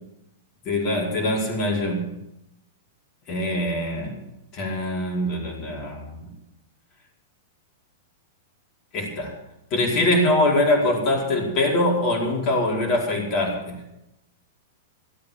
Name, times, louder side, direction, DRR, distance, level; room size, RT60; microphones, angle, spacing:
voice 1, 0.6-2.0 3.3-4.2 4.5-6.3 8.9-9.3 9.7-13.7, left 1 dB, 35° left, 0 dB, 4.7 m, -23 dB
17.0 x 8.8 x 7.7 m, 0.86 s
figure-of-eight pair, 100°, 0 cm